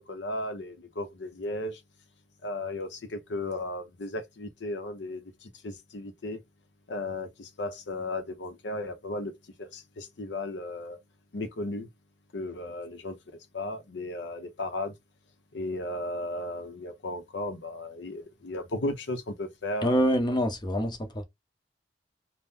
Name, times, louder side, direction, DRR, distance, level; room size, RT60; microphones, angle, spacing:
voice 1, 0.1-1.8 2.4-6.4 6.9-9.3 9.6-11.0 11.3-11.9 12.3-13.2 13.5-14.9 15.5-20.1, left 2 dB, 85° left, 0.7 m, -35 dB
voice 2, 19.8-21.2, equal, 25° left, 0.7 m, -25 dB
2.7 x 2.1 x 3.5 m
head